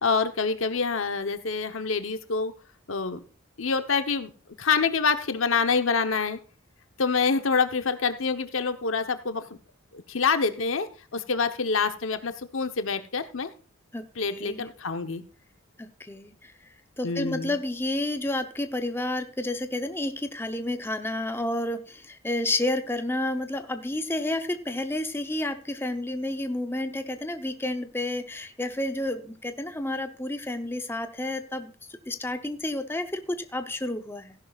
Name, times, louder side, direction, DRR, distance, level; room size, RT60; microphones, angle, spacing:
voice 1, 0.0-2.5 2.9-3.2 3.6-4.3 4.6-6.4 7.0-9.4 9.9-13.5 14.2-15.2 17.0-17.5, left 5 dB, 80° left, 9 dB, 1.0 m, -26 dB
voice 2, 13.9-14.7 15.8-16.5 17.0-31.7 32.1-34.3, left 1 dB, 10° left, 7 dB, 0.8 m, -30 dB
15.5 x 11.0 x 2.4 m, 0.37 s
head